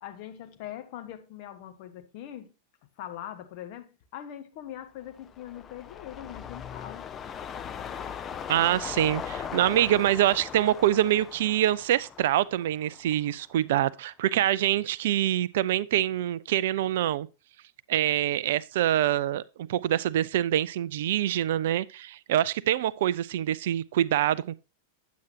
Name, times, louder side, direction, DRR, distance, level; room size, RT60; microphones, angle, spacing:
voice 1, 0.0-2.5 3.0-7.1, left 11 dB, 45° left, 1.2 m, -42 dB
sound 1, 5.1-13.5 13.9-14.0, left 7 dB, 25° left, 0.6 m, -39 dB
voice 2, 8.5-17.3 17.9-24.6, right 12 dB, 55° right, 0.4 m, -25 dB
9.4 x 7.9 x 2.7 m
figure-of-eight pair, 90°, 0 cm